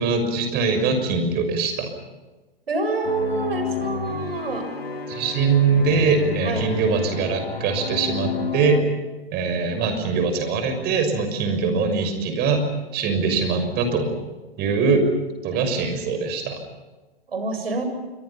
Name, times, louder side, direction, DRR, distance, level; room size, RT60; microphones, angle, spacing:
voice 1, 0.0-1.9 5.1-8.8 9.3-12.7 12.9-14.1 14.6-15.1 15.4-16.6, right 4 dB, 35° right, 7 dB, 6.4 m, -22 dB
voice 2, 2.7-4.8 6.4-6.6 15.5-15.7 17.3-17.8, right 3 dB, 75° right, 7 dB, 7.1 m, -27 dB
sound 1, 3.0-8.8, left 5 dB, 80° left, 3.0 m, -30 dB
28.0 x 24.5 x 5.8 m, 1.2 s
figure-of-eight pair, 110°, 30 cm